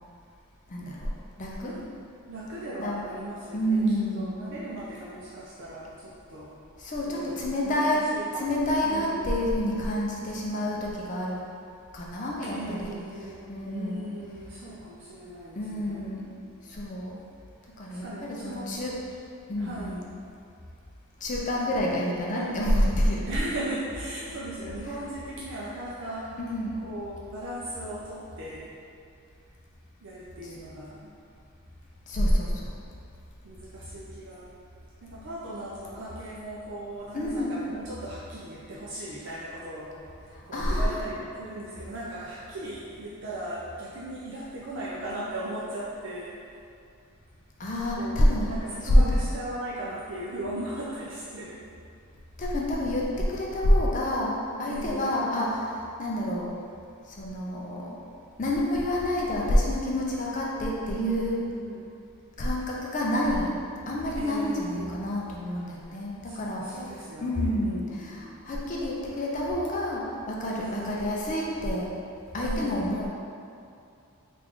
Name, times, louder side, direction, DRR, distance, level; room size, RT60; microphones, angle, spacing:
voice 1, 0.7-1.7 2.8-3.0 3.5-4.4 6.8-8.0 8.3-11.4 11.9-12.9 13.5-14.1 15.5-16.3 16.6-17.2 17.8-19.0 19.5-20.1 21.2-23.2 25.0-25.1 26.4-26.8 30.4-30.5 32.1-32.7 37.1-37.5 40.5-41.0 47.6-48.5 48.8-49.0 52.4-56.5 57.1-58.0 58.4-61.4 62.4-63.6 63.9-66.6 67.2-71.9 72.3-73.1, left 1 dB, 35° left, -3 dB, 0.4 m, -27 dB
voice 2, 2.3-3.8 4.1-6.5 7.1-9.4 12.5-16.1 17.9-18.9 19.6-20.1 22.3-22.9 23.3-26.4 26.8-28.7 30.0-31.1 33.4-34.5 35.0-46.4 47.9-51.6 54.6-55.3 60.9-61.9 64.2-65.0 65.5-65.7 66.2-68.2 70.6-71.2 72.4-73.1, right 1 dB, 55° right, -7 dB, 0.4 m, -38 dB
3.3 x 2.5 x 3.6 m, 2.5 s
head